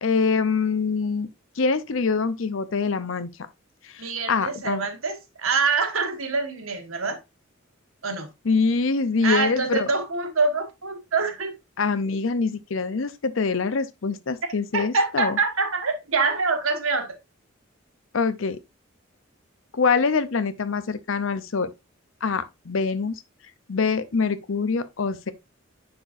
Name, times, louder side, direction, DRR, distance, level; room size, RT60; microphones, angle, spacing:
voice 1, 0.0-1.3 1.6-3.3 3.8-4.9 8.4-9.9 11.8-15.4 18.1-18.6 19.7-21.7 22.2-23.2 23.7-25.3, left 4 dB, 70° left, 0.6 m, -24 dB
voice 2, 4.0-7.2 8.0-8.3 9.2-11.5 14.7-17.2, right 4 dB, 85° right, 1.5 m, -25 dB
10.0 x 4.4 x 2.6 m
head